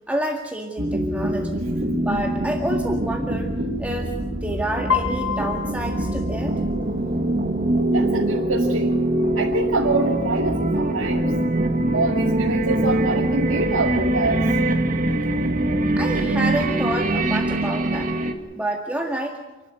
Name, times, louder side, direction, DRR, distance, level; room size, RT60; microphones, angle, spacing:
voice 1, 0.1-1.6 2.0-3.5 3.8-4.1 4.4-6.6 16.0-18.1 18.5-19.4, right 1 dB, 5° right, 0 dB, 1.9 m, -28 dB
sound 1, 0.8-18.3, right 1 dB, 40° right, 2.0 m, -23 dB
Piano, 4.9-6.9, left 7 dB, 65° left, 1.3 m, -28 dB
voice 2, 7.9-9.0 9.4-11.3 11.9-14.5, right 3 dB, 70° right, -1 dB, 2.3 m, -25 dB
29.5 x 11.5 x 9.4 m, 1.1 s
head